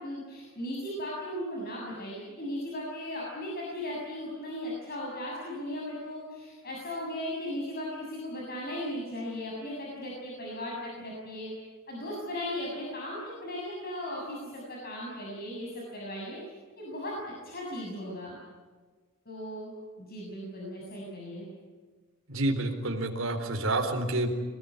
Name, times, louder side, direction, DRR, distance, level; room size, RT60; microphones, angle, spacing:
voice 1, 0.0-11.5 11.9-16.4 16.8-17.2 17.4-18.3 19.3-19.7 20.0-21.4, left 1 dB, 45° left, -3 dB, 7.1 m, -37 dB
voice 2, 22.3-24.3, right 2 dB, 65° right, 3 dB, 4.0 m, -28 dB
25.0 x 20.0 x 9.8 m, 1.4 s
head